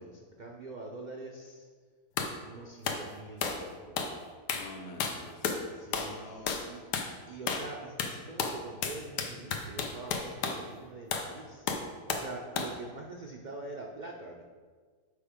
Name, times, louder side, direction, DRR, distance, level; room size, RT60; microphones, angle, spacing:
voice 1, 0.0-1.7 2.4-4.2 5.7-11.7 12.1-14.4, right 2 dB, 65° right, 0 dB, 0.4 m, -44 dB
sound 1, 2.2-2.4 2.8-3.0 3.4-3.6 4.0-4.2 4.5-4.7 5.0-5.6 5.9-6.2 6.5-6.7 6.9-7.1 7.5-7.7 8.0-10.6 11.1-11.3 11.7-12.3 12.6-12.8, left 5 dB, 90° left, 1.3 m, -32 dB
voice 2, 4.5-5.5 6.2-6.7, left 2 dB, 60° left, 4 dB, 1.1 m, -47 dB
6.6 x 5.0 x 5.0 m, 1.5 s
omnidirectional pair, 1.7 m